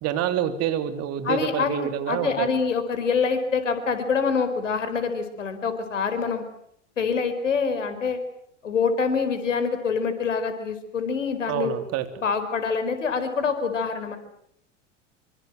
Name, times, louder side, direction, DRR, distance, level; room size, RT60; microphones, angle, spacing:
voice 1, 0.0-2.5 11.5-12.1, right 10 dB, 40° right, 10 dB, 3.4 m, -27 dB
voice 2, 1.2-6.4 7.0-8.2 8.6-11.7 12.2-14.2, left 5 dB, 75° left, 10 dB, 4.7 m, -25 dB
27.0 x 25.0 x 7.9 m, 0.68 s
figure-of-eight pair, 90°, 37 cm